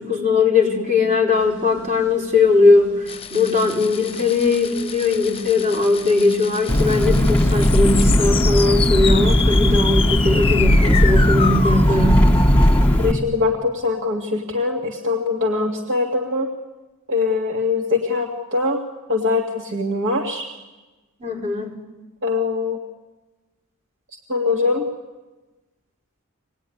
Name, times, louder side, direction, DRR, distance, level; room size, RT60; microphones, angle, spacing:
voice 1, 0.0-12.3 21.2-21.8, left 3 dB, 35° right, -1 dB, 4.6 m, -19 dB
sound 1, 1.3-12.3, right 1 dB, 90° right, 5.6 m, -40 dB
sound 2, 3.1-12.9, left 6 dB, 25° left, 0.9 m, -28 dB
Engine, 6.7-13.1, equal, 5° left, 1.8 m, -17 dB
voice 2, 13.0-16.5 17.1-18.8 19.1-20.5 22.2-22.8 24.3-24.9, left 3 dB, 60° right, 1 dB, 2.2 m, -22 dB
26.0 x 19.5 x 9.9 m, 1.2 s
head